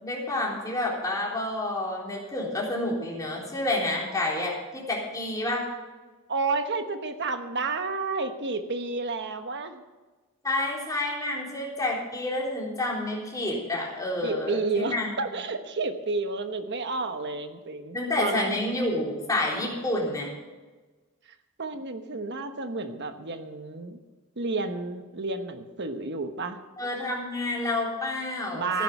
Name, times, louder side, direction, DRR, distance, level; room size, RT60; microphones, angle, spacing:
voice 1, 0.0-5.6 10.4-15.1 17.9-20.3 26.8-28.8, left 2 dB, 15° left, -3 dB, 3.7 m, -29 dB
voice 2, 6.3-9.8 14.2-18.6 21.6-24.0 24.4-26.6 28.5-28.8, right 3 dB, 55° right, 8 dB, 1.2 m, -31 dB
14.0 x 10.5 x 5.5 m, 1.3 s
head